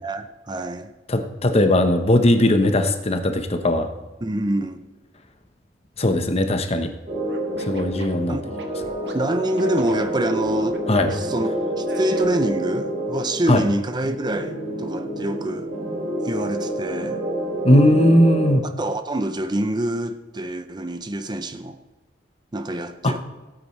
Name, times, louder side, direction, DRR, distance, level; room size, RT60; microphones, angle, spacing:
voice 1, 0.0-0.9 4.2-4.9 8.3-8.4 9.1-10.8 11.1-11.5 11.8-15.7 16.2-17.2 18.6-21.8 22.5-23.2, right 1 dB, 25° right, 0.6 m, -26 dB
voice 2, 1.1-3.9 6.0-6.9 7.6-8.4 10.9-11.1 13.5-13.6 17.6-18.6 23.0-23.1, left 1 dB, 35° left, 1.0 m, -18 dB
sound 1, 7.1-18.5, right 1 dB, 45° right, 3.8 m, -28 dB
Scratching (performance technique), 7.2-9.1 9.6-11.2 11.8-12.5, right 2 dB, 70° right, 1.6 m, -40 dB
16.5 x 8.8 x 3.2 m
head